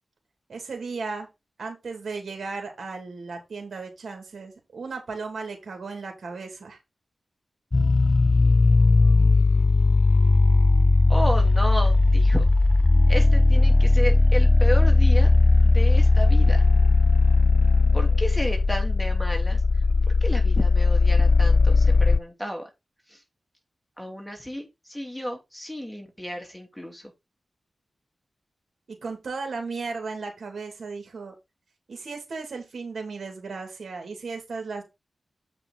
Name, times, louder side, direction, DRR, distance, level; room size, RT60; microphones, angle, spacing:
voice 1, 0.5-1.3 1.6-6.8 28.9-31.3 31.9-34.8, right 4 dB, 75° right, 2.5 m, -35 dB
sound 1, 7.7-22.2, left 3 dB, 40° left, 0.5 m, -18 dB
voice 2, 11.1-12.5 13.1-15.4 15.6-16.7 17.9-19.6 20.1-22.7 23.1-23.2 24.0-27.1, equal, 5° left, 2.8 m, -32 dB
7.6 x 5.1 x 4.0 m
cardioid pair, 50°, 0 cm